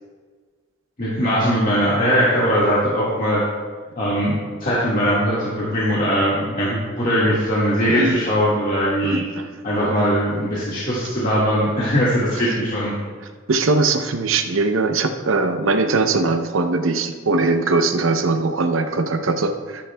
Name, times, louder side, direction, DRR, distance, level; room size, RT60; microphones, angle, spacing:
voice 1, 1.0-3.4 4.0-9.2 9.6-12.9, equal, 40° left, -8 dB, 1.8 m, -20 dB
voice 2, 7.9-8.2 9.0-9.6 12.4-12.6 13.5-19.9, right 3 dB, 80° right, 7 dB, 0.7 m, -21 dB
13.0 x 10.5 x 2.3 m, 1.5 s
head